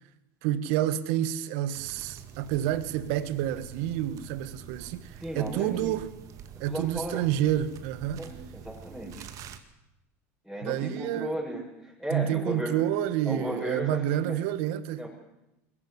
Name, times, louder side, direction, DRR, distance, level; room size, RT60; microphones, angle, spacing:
voice 1, 0.4-6.1 6.6-8.2 10.6-11.4 12.1-15.1, right 11 dB, 70° right, 1.6 m, -29 dB
sound 1, 1.7-9.6, right 8 dB, 50° right, 2.1 m, -46 dB
voice 2, 5.2-6.0 6.7-7.2 8.2-9.3 10.4-12.8 13.3-14.4 15.0-15.1, right 1 dB, ahead, 7.2 m, -35 dB
21.5 x 15.0 x 9.9 m
supercardioid pair, 110°, 8 cm